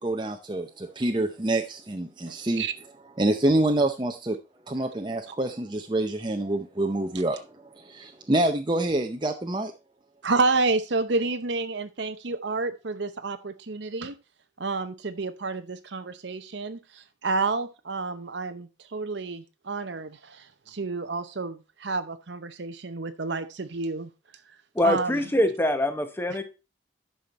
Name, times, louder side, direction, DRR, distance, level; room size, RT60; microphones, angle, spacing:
voice 1, 0.0-2.6 3.2-4.4 4.7-9.7, right 1 dB, 25° right, 4 dB, 0.7 m, -26 dB
voice 2, 10.2-14.2 14.6-24.1 24.8-25.3 26.3-26.4, right 3 dB, 65° right, 9 dB, 0.8 m, -29 dB
voice 3, 24.7-26.4, left 1 dB, 10° left, 8 dB, 1.0 m, -24 dB
11.0 x 5.7 x 4.2 m, 0.29 s
head